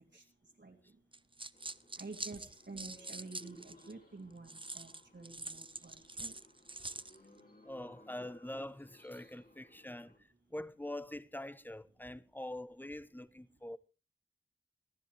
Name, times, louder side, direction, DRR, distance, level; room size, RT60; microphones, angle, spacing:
sound 1, 1.1-3.9 4.5-7.2, right 2 dB, 25° right, 0.7 m, -45 dB
sound 2, 1.5-10.2, left 1 dB, 45° left, 4.8 m, -62 dB
voice 1, 2.0-6.4, right 3 dB, 65° right, 3.0 m, -49 dB
voice 2, 7.6-13.8, left 1 dB, 10° left, 0.9 m, -44 dB
28.0 x 10.5 x 3.1 m
wide cardioid pair, 45°, 20 cm